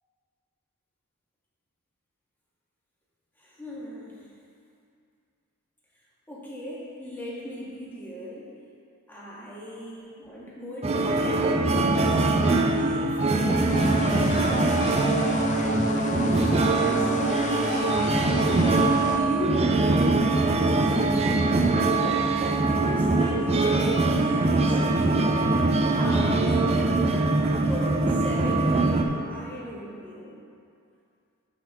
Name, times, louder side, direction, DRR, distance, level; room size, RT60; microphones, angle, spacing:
voice 1, 3.4-4.3 6.3-8.5 9.1-15.6 16.1-17.1 17.7-18.1 19.0-21.7 22.7-25.2 25.8-27.1 27.3-30.4, equal, 10° left, -7 dB, 1.6 m, -37 dB
sound 1, 10.8-29.0, right 2 dB, 30° right, 0.5 m, -23 dB
sound 2, 13.7-19.2, left 2 dB, 35° left, 0.5 m, -31 dB
12.0 x 5.3 x 3.6 m, 2.4 s
head